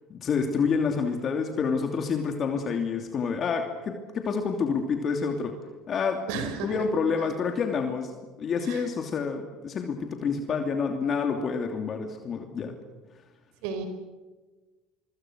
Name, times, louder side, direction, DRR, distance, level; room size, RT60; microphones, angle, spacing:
voice 1, 0.1-5.5 5.9-6.2 6.6-8.1 8.4-12.8, left 5 dB, 40° left, 4 dB, 2.8 m, -28 dB
voice 2, 6.3-6.7 8.7-8.9 13.6-13.9, right 5 dB, 75° right, 8 dB, 4.8 m, -32 dB
25.0 x 24.5 x 6.4 m, 1.3 s
supercardioid pair, 90°, 0 cm